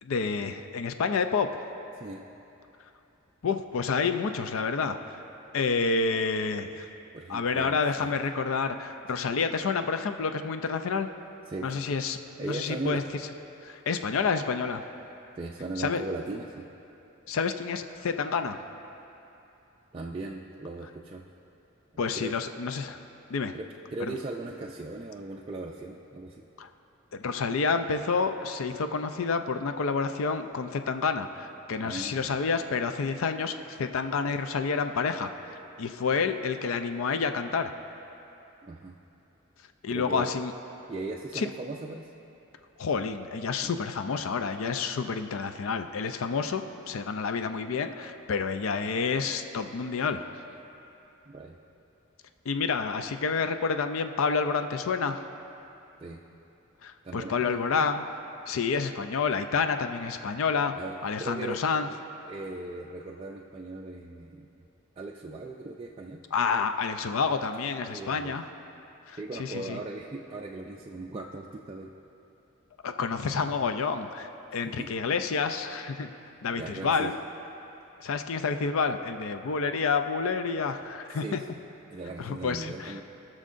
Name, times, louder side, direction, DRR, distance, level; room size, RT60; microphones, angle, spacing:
voice 1, 0.0-1.6 3.4-5.0 5.5-6.9 7.3-11.1 11.6-13.0 13.6-14.8 15.8-16.0 17.3-18.6 22.0-23.0 23.3-23.5 24.0-24.1 26.6-26.7 27.1-37.7 39.8-40.5 41.3-41.5 42.8-50.2 52.5-55.2 56.8-58.0 58.5-60.7 61.0-61.9 66.3-68.4 69.1-69.8 72.8-76.1 76.4-77.1 78.0-81.4 82.2-83.0, left 5 dB, 70° left, 8 dB, 0.4 m, -29 dB
voice 2, 7.1-8.2 11.5-11.9 12.4-13.0 15.3-16.7 19.9-21.2 22.2-22.3 23.5-23.7 23.9-26.5 31.8-32.4 38.6-39.0 39.9-40.4 40.9-42.1 43.6-43.7 51.3-51.6 56.0-56.2 57.0-57.6 60.7-61.6 62.3-64.6 65.0-66.2 67.9-68.4 69.2-71.9 74.5-74.9 76.6-77.1 81.1-81.5 81.9-83.0, right 2 dB, 25° right, -1 dB, 0.3 m, -38 dB
19.0 x 6.3 x 2.6 m, 2.9 s
head